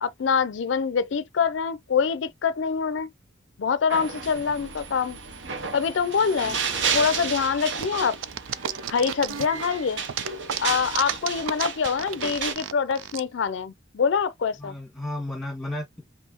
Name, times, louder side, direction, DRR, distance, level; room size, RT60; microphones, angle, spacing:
voice 1, 0.0-3.1 3.6-5.2 5.7-8.1 8.9-10.0 10.6-14.7, left 6 dB, 70° left, 0.4 m, -25 dB
sound 1, 3.9-12.5, right 5 dB, 70° right, 0.8 m, -32 dB
voice 2, 6.2-6.6 7.2-7.4 14.5-16.0, left 1 dB, ahead, 1.6 m, -34 dB
sound 2, 7.8-9.7 10.0-13.2, right 10 dB, 85° right, 0.4 m, -32 dB
sound 3, 8.4-11.8, right 3 dB, 30° right, 1.9 m, -53 dB
5.4 x 2.6 x 2.8 m
head